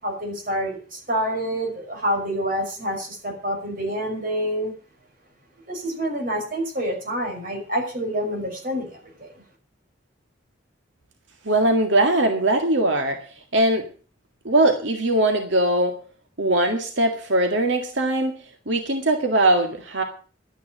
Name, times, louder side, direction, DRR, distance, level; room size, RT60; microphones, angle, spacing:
voice 1, 0.0-4.7 5.7-9.3, equal, 50° right, 1 dB, 5.9 m, -27 dB
voice 2, 11.5-13.2 13.5-13.9 14.4-16.0 16.4-18.3 18.7-20.0, right 1 dB, 90° right, 4 dB, 2.0 m, -20 dB
12.5 x 9.7 x 7.8 m, 0.39 s
head